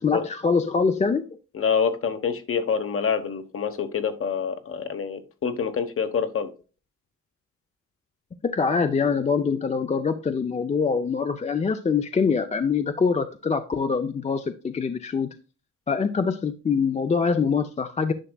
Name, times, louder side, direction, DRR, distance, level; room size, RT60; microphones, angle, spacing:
voice 1, 0.0-1.4 8.4-15.3 15.9-18.1, left 5 dB, 25° left, 8 dB, 0.4 m, -24 dB
voice 2, 1.5-6.5, left 6 dB, 45° left, 9 dB, 1.0 m, -26 dB
10.0 x 5.9 x 2.2 m, 0.34 s
wide cardioid pair, 170°, 31 cm